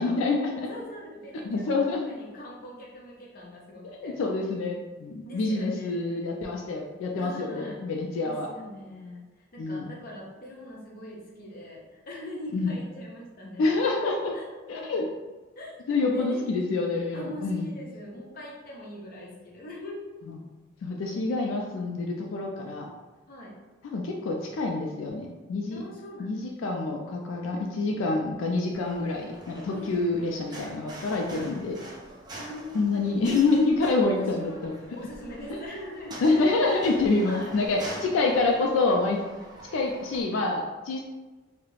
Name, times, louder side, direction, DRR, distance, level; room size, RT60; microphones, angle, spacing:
voice 1, 0.0-0.7 1.4-2.1 4.0-8.5 9.6-9.9 12.5-12.7 13.6-14.4 14.7-15.1 15.9-17.7 20.8-22.9 23.8-25.8 26.2-31.8 32.7-34.8 35.5-35.6 36.2-39.2 39.7-41.0, left 3 dB, 85° left, 0 dB, 0.3 m, -27 dB
voice 2, 0.7-1.7 2.1-4.2 5.2-6.1 7.2-7.8 8.2-13.8 14.3-14.9 15.6-16.5 17.1-20.1 23.3-23.5 25.7-26.3 27.5-27.7 29.7-30.4 31.2-31.6 32.3-33.2 34.2-34.6 34.9-36.2 37.2-37.6, left 1 dB, 50° left, -3 dB, 0.6 m, -42 dB
sound 1, 28.7-40.2, right 1 dB, 20° right, 0.4 m, -44 dB
2.3 x 2.0 x 3.1 m, 1.2 s
head